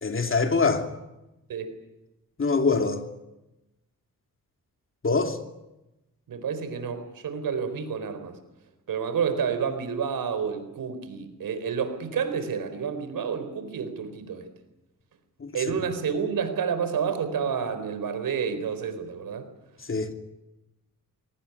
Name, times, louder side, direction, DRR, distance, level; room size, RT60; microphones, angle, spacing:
voice 1, 0.0-0.9 2.4-3.0 5.0-5.4 15.4-15.5 19.9-20.1, left 4 dB, 40° left, 6 dB, 2.9 m, -24 dB
voice 2, 6.3-8.4 8.9-14.5 15.5-19.5, right 6 dB, 85° right, 9 dB, 4.3 m, -29 dB
23.5 x 18.5 x 9.9 m, 0.97 s
cardioid pair, 90°, 33 cm